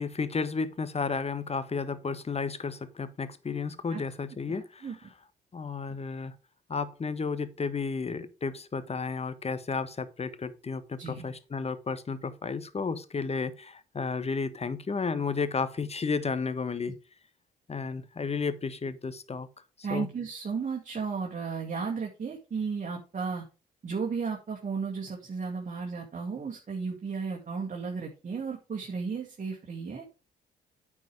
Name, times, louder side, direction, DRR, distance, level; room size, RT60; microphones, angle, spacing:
voice 1, 0.0-4.9 5.5-6.3 6.7-17.0 17.7-19.5 19.9-20.1, left 4 dB, 30° left, 1.2 m, -32 dB
voice 2, 19.8-23.4 23.8-30.0, right 5 dB, 40° right, 2.0 m, -34 dB
9.2 x 4.9 x 4.8 m
hypercardioid pair, 50°, 20 cm